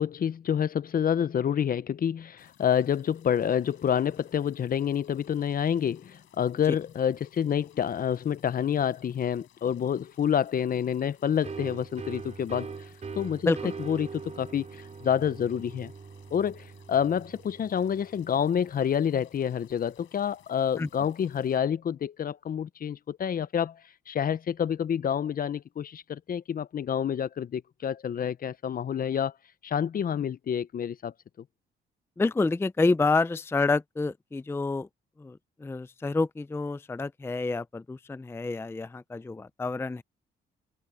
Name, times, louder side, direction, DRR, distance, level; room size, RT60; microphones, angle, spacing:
voice 1, 0.0-12.7 13.1-13.5 13.9-15.9 16.3-23.8 24.1-29.3 29.6-31.1, left 8 dB, 45° left, 0.7 m, -28 dB
sound 1, 2.4-21.6, left 12 dB, 75° left, 6.7 m, -61 dB
sound 2, 11.4-18.9, right 5 dB, 35° right, 3.4 m, -42 dB
voice 2, 32.2-34.9 35.2-40.0, left 3 dB, 10° left, 0.5 m, -28 dB
cardioid pair, 90°, 20 cm